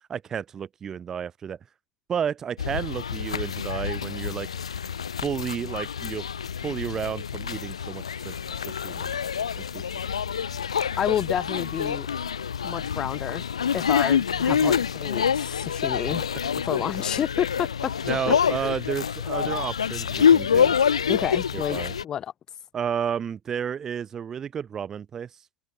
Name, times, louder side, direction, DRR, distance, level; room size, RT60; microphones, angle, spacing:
voice 1, 0.1-1.6 2.1-4.5 5.2-6.2 6.6-8.3 8.7-9.1 9.6-9.8 14.5-14.8 18.1-20.8 21.5-21.9 22.7-25.3, right 8 dB, 15° right, 0.7 m, -31 dB
sound 1, 2.6-22.0, left 7 dB, 70° left, 0.3 m, -26 dB
voice 2, 11.0-12.1 12.6-13.4 13.7-16.3 16.6-17.9 18.3-18.4 18.6-18.7 21.1-21.8 22.0-22.3, left 10 dB, 20° left, 1.6 m, -29 dB
open air
figure-of-eight pair, 125°, 3 cm